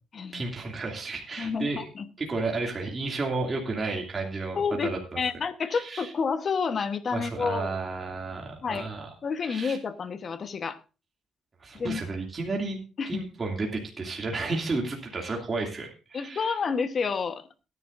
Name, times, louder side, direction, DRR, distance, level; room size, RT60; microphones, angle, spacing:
voice 1, 0.3-1.9 2.2-5.2 5.7-6.1 7.1-9.1 9.4-9.8 11.6-12.8 13.1-16.5, right 3 dB, 30° right, 0 dB, 2.5 m, -32 dB
voice 2, 1.4-2.1 4.6-4.9 5.2-7.7 8.6-8.9 9.2-10.8 11.7-12.0 13.0-13.3 16.1-17.5, left 5 dB, 45° left, 11 dB, 1.1 m, -29 dB
18.0 x 10.0 x 2.6 m, 0.32 s
cardioid pair, 90°, 0 cm